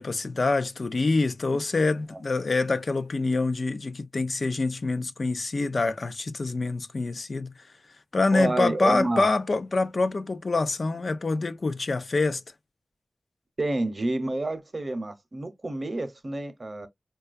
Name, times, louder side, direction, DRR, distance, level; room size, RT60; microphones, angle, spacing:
voice 1, 0.0-7.7 8.1-12.4, left 3 dB, 60° left, 0.4 m, -26 dB
voice 2, 8.3-9.3 13.6-16.9, right 2 dB, 45° right, 0.7 m, -29 dB
4.5 x 2.3 x 2.4 m
wide cardioid pair, 80°, 0 cm